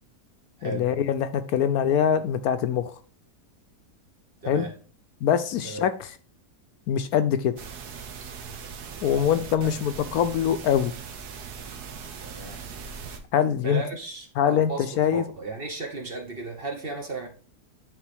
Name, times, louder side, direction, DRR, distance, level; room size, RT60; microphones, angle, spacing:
voice 1, 0.6-2.9 4.5-4.7 5.2-6.1 6.9-7.5 9.0-10.9 13.3-13.8 14.4-15.2, left 8 dB, 75° left, 1.0 m, -23 dB
sound 1, 7.6-13.2, right 6 dB, 75° right, 1.4 m, -40 dB
voice 2, 9.1-9.5 12.2-12.6 13.6-17.3, right 3 dB, 40° right, 1.1 m, -35 dB
9.3 x 3.7 x 3.3 m
omnidirectional pair, 1.7 m